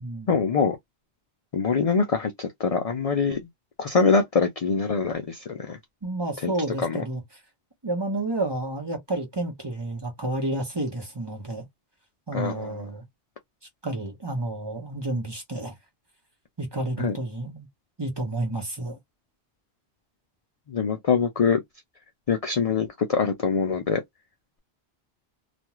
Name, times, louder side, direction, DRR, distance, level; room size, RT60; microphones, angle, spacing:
voice 1, 0.3-0.8 1.5-3.4 3.8-5.8 6.4-6.5 6.8-7.0 12.3-12.8 17.0-17.2 20.7-21.6 22.3-24.0, left 5 dB, 55° left, 0.4 m, -24 dB
voice 2, 6.0-7.2 7.8-11.6 12.3-13.0 13.8-15.7 16.6-17.7 18.0-19.0, right 2 dB, 25° right, 0.8 m, -30 dB
2.5 x 2.2 x 3.0 m
omnidirectional pair, 1.1 m